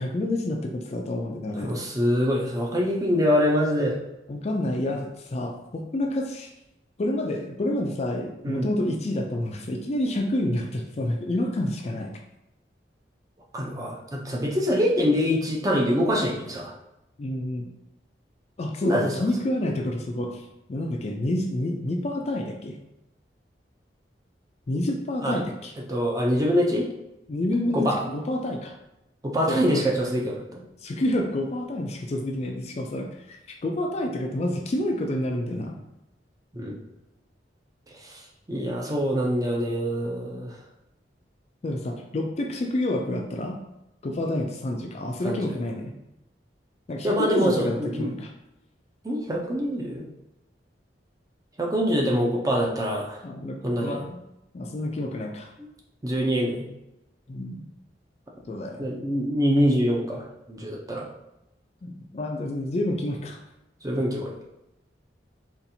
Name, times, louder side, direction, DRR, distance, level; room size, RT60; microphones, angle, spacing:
voice 1, 0.0-1.8 4.3-6.5 7.0-12.1 17.2-17.7 18.6-20.4 20.7-22.8 24.7-25.7 27.3-28.7 29.5-29.8 30.8-35.8 41.6-43.6 44.0-45.9 46.9-48.3 53.2-54.2 54.5-55.5 57.3-57.6 58.5-58.9 61.8-63.4, left 1 dB, 35° left, 2 dB, 0.4 m, -28 dB
voice 2, 1.6-4.0 8.4-8.7 13.5-16.7 18.8-19.1 25.2-25.4 25.9-26.9 27.7-28.0 29.2-30.6 36.5-36.8 38.0-38.2 38.5-40.5 45.2-45.4 47.0-48.1 49.0-50.0 51.6-53.2 53.6-54.0 56.0-56.7 58.8-60.2 60.5-61.0 63.8-64.3, equal, 20° right, -2 dB, 0.6 m, -24 dB
4.0 x 2.5 x 2.7 m, 0.89 s
head